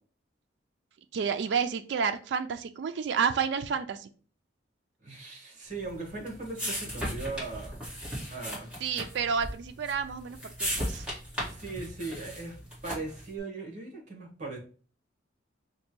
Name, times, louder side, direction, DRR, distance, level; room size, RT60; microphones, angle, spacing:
voice 1, 1.1-4.1 8.8-11.0, right 6 dB, 70° right, 8 dB, 0.3 m, -30 dB
voice 2, 5.0-7.8 8.3-8.7 11.4-14.6, right 3 dB, 40° right, 1 dB, 1.0 m, -39 dB
sound 1, 5.8-13.3, equal, 5° right, 1.4 m, -37 dB
5.1 x 2.2 x 3.0 m, 0.40 s
head